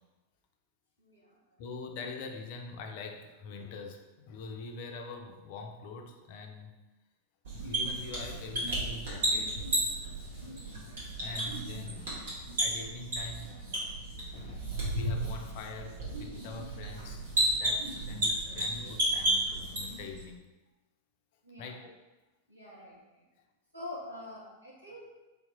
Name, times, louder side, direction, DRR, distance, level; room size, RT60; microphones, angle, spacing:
voice 1, 1.0-1.6 13.7-13.8 21.4-21.8 22.5-23.3 23.7-25.1, left 1 dB, 90° right, -7 dB, 1.2 m, -46 dB
voice 2, 1.6-6.8 7.5-10.3 11.1-13.8 14.3-14.7 14.9-20.4 21.6-21.9, left 3 dB, 50° left, 4 dB, 0.4 m, -44 dB
sound 1, 7.4-20.2, right 1 dB, 60° right, 1.4 m, -33 dB
3.5 x 3.0 x 3.5 m, 1.1 s
figure-of-eight pair, 90°, 0 cm